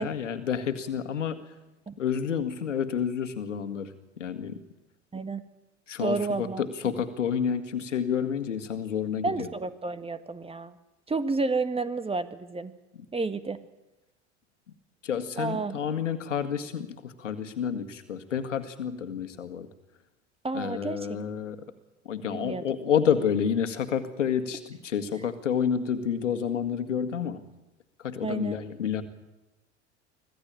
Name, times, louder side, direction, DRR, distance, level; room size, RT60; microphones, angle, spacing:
voice 1, 0.0-1.4 2.0-4.6 5.9-9.5 15.0-19.7 20.5-21.6 22.1-27.4 28.0-29.0, left 7 dB, 85° left, 10 dB, 1.9 m, -29 dB
voice 2, 6.0-6.6 6.9-7.0 9.2-10.8 11.1-12.7 13.1-13.6 15.4-15.8 20.4-21.2 22.2-22.8 28.2-28.6, right 3 dB, 15° right, 11 dB, 1.7 m, -31 dB
25.5 x 15.5 x 8.9 m, 1.0 s
hypercardioid pair, 75°, 36 cm